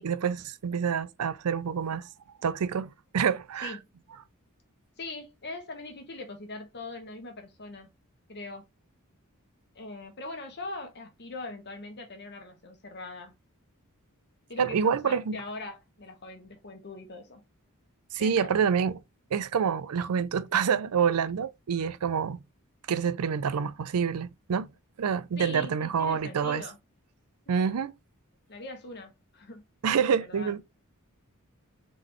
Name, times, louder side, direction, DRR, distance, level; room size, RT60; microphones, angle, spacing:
voice 1, 0.0-2.1 2.4-3.8 14.6-15.4 18.1-18.9 19.3-22.4 22.9-24.7 25.0-26.6 27.5-27.9 29.8-30.6, right 7 dB, 85° right, 0.5 m, -27 dB
voice 2, 5.0-7.9 8.3-8.6 9.7-13.3 14.5-17.4 18.2-18.5 25.4-26.8 27.5-27.8 28.5-29.6 29.9-30.6, left 2 dB, 50° left, 1.3 m, -41 dB
3.7 x 3.7 x 3.1 m
head